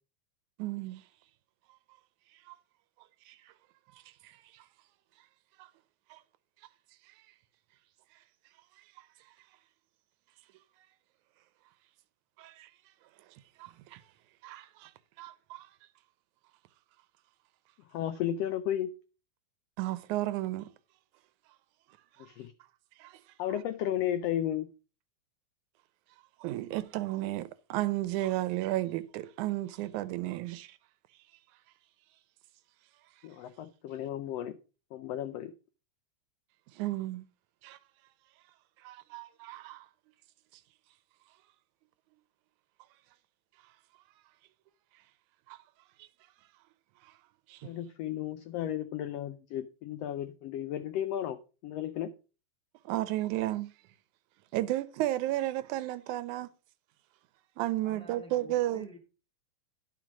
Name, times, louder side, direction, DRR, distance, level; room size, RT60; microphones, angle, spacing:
voice 1, 0.6-1.0 2.5-2.6 3.3-3.4 4.2-4.6 5.6-5.7 6.1-6.2 12.4-12.7 13.6-14.0 14.4-14.9 15.2-15.7 19.8-20.7 23.0-23.2 26.4-30.8 36.7-37.3 37.6-37.8 38.8-39.9 45.5-45.6 46.0-46.1 47.5-47.7 52.9-53.7 54.5-56.5 57.6-58.9, right 15 dB, 80° right, 2.0 m, -33 dB
voice 2, 17.9-18.9 22.2-22.5 23.4-24.7 33.2-34.6 34.9-35.5 47.6-52.1, left 11 dB, 85° left, 1.4 m, -34 dB
voice 3, 57.8-59.0, left 1 dB, ahead, 1.5 m, -50 dB
10.5 x 5.2 x 6.0 m
omnidirectional pair, 3.5 m